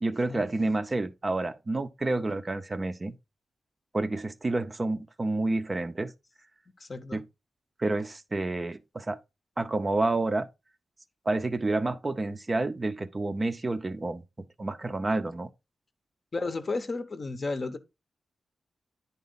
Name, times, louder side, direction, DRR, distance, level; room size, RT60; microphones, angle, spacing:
voice 1, 0.0-3.1 3.9-6.1 7.1-7.2 7.8-9.2 9.6-10.5 11.3-14.2 14.6-15.5, right 2 dB, 25° right, 0.6 m, -29 dB
voice 2, 6.8-7.2 16.3-17.8, left 3 dB, 35° left, 0.7 m, -33 dB
10.5 x 4.1 x 3.9 m
wide cardioid pair, 165°, 0 cm